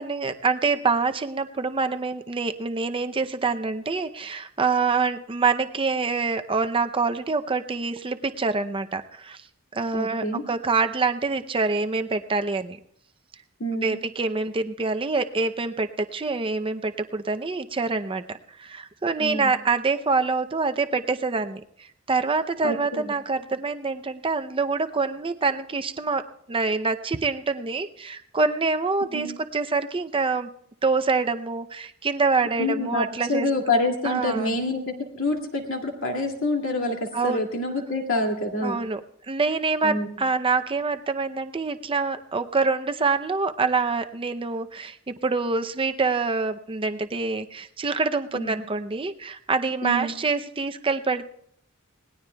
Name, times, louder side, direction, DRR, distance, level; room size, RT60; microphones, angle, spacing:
voice 1, 0.0-9.4 9.7-12.8 13.8-29.3 29.5-30.5 30.8-33.5 34.0-34.6 37.1-37.5 38.6-39.0 39.3-51.3, right 4 dB, 25° right, 8 dB, 0.6 m, -26 dB
voice 2, 9.9-10.4 13.6-14.0 19.2-19.5 22.6-23.1 29.1-29.4 32.6-38.8 39.8-40.1 48.3-48.5 49.8-50.2, left 2 dB, 65° left, 1 dB, 2.3 m, -27 dB
26.5 x 19.0 x 2.3 m, 0.71 s
head